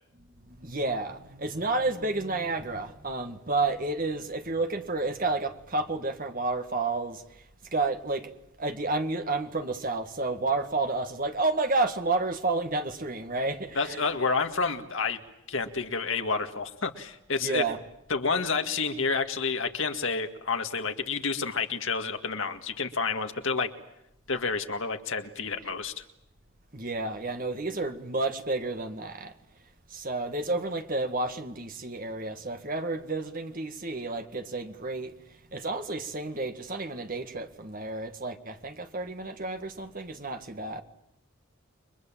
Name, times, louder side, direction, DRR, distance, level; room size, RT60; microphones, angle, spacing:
voice 1, 0.5-7.2 7.7-8.3 8.6-14.1 17.4-17.8 26.7-29.3 29.9-35.1 35.5-40.8, right 3 dB, 40° right, 2.0 m, -30 dB
voice 2, 13.8-15.2 15.5-17.6 18.1-23.7 24.3-26.0, left 4 dB, 60° left, 2.0 m, -29 dB
29.5 x 23.5 x 7.6 m
head